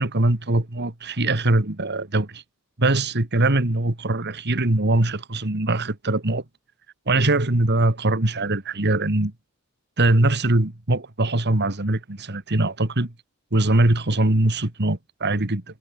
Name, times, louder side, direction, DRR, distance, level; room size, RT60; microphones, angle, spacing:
voice 1, 0.0-2.4 2.8-6.4 7.1-9.3 10.0-13.1 13.5-15.6, right 2 dB, 55° right, 2.1 m, -22 dB
head